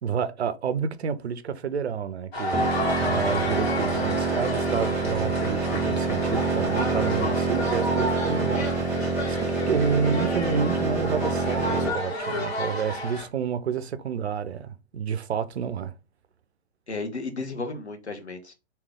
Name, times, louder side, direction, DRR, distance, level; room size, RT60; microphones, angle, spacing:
voice 1, 0.0-9.0 9.3-15.9, right 6 dB, 75° right, 0.5 m, -29 dB
sound 1, 2.3-13.3, left 1 dB, 65° left, 1.6 m, -31 dB
sound 2, 2.5-11.9, right 4 dB, 10° right, 0.5 m, -27 dB
voice 2, 16.9-18.5, left 3 dB, 80° left, 1.0 m, -33 dB
3.2 x 2.8 x 3.5 m
figure-of-eight pair, 110°, 33 cm